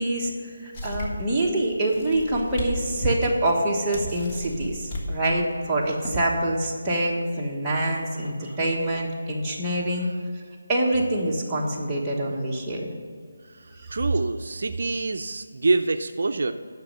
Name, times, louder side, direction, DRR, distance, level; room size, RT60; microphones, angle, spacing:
voice 1, 0.0-10.1 10.7-12.9, right 1 dB, 10° right, -6 dB, 1.3 m, -25 dB
sound 1, 0.7-1.3 1.9-2.7 3.2-3.3 3.9-5.1 5.8-6.2, equal, 25° left, 1.6 m, -35 dB
voice 2, 7.8-8.3 13.5-16.5, right 3 dB, 60° right, 8 dB, 0.4 m, -27 dB
9.4 x 6.4 x 6.5 m, 2.1 s
figure-of-eight pair, 165°, 0 cm